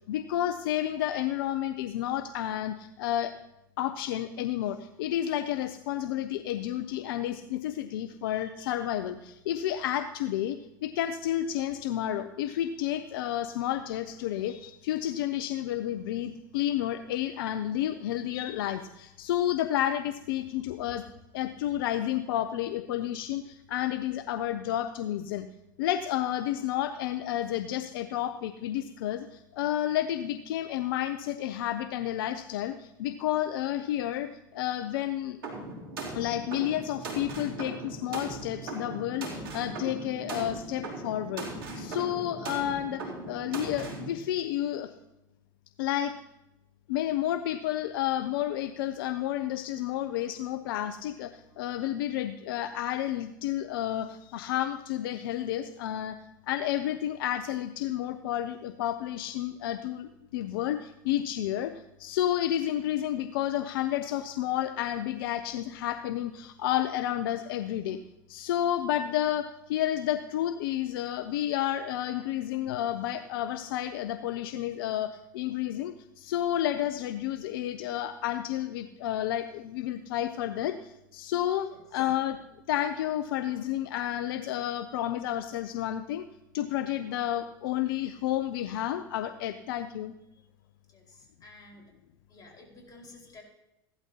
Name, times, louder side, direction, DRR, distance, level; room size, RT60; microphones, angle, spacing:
voice 1, 0.1-3.3 3.8-21.0 21.3-25.5 25.8-35.4 36.1-41.5 41.8-44.9 45.8-46.1 46.9-56.2 56.5-61.7 62.0-68.0 68.3-82.4 82.7-86.2 86.5-90.1, left 12 dB, 75° left, 11 dB, 0.5 m, -31 dB
sound 1, 35.4-44.1, right 2 dB, 80° right, 3.0 m, -39 dB
voice 2, 90.9-91.8 92.3-93.4, left 2 dB, 35° left, -1 dB, 4.6 m, -52 dB
15.5 x 12.0 x 2.8 m, 0.90 s
hypercardioid pair, 85°, 12 cm